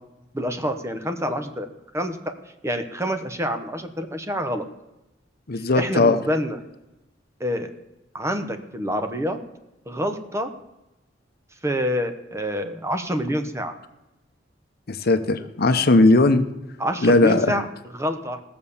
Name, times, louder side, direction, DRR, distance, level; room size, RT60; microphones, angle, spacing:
voice 1, 0.3-1.7 1.9-2.2 2.6-4.6 5.8-6.6 7.4-7.7 8.1-9.4 9.9-10.5 11.6-13.7 16.8-17.6 17.9-18.4, equal, 15° right, 7 dB, 1.0 m, -27 dB
voice 2, 5.5-6.2 14.9-16.4 17.0-17.5, left 2 dB, 55° left, 10 dB, 0.8 m, -18 dB
16.5 x 6.9 x 7.1 m, 0.97 s
head